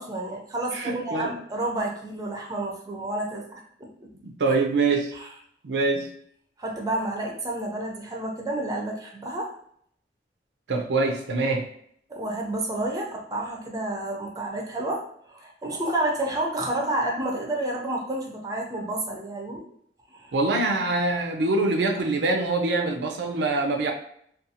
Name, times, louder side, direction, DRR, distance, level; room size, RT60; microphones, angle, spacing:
voice 1, 0.0-3.9 4.5-4.6 5.1-5.3 6.6-9.5 12.1-19.7 20.1-20.3, right 1 dB, 20° right, 0 dB, 0.5 m, -30 dB
voice 2, 0.7-1.4 4.2-5.1 5.6-6.1 10.7-11.7 20.3-23.9, right 3 dB, 75° right, 3 dB, 0.4 m, -24 dB
2.5 x 2.3 x 2.7 m, 0.66 s
head